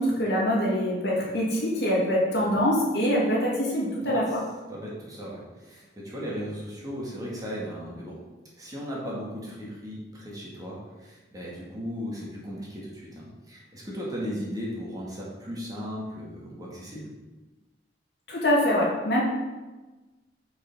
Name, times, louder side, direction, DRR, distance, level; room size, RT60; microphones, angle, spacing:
voice 1, 0.0-4.4 18.3-19.2, equal, 65° left, -5 dB, 2.3 m, -24 dB
voice 2, 4.0-4.4 4.7-8.2 8.6-17.1, equal, 20° right, -5 dB, 2.1 m, -36 dB
5.8 x 5.7 x 5.4 m, 1.2 s
head